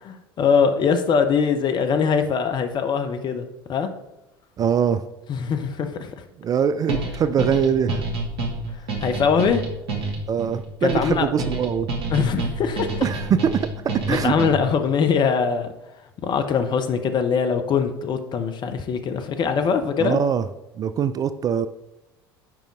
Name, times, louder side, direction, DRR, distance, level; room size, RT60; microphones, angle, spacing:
voice 1, 0.1-3.9 5.3-6.2 9.0-9.6 10.8-11.3 12.1-13.0 14.1-15.7 16.2-20.2, left 6 dB, 35° left, 0.8 m, -22 dB
voice 2, 4.6-5.0 6.4-8.0 10.3-12.1 13.0-13.7 14.1-14.3 20.0-20.5 20.8-21.7, right 7 dB, 30° right, 0.3 m, -22 dB
sound 1, 6.9-14.8, right 2 dB, 70° right, 1.3 m, -28 dB
7.6 x 5.1 x 3.6 m
figure-of-eight pair, 70°, 13 cm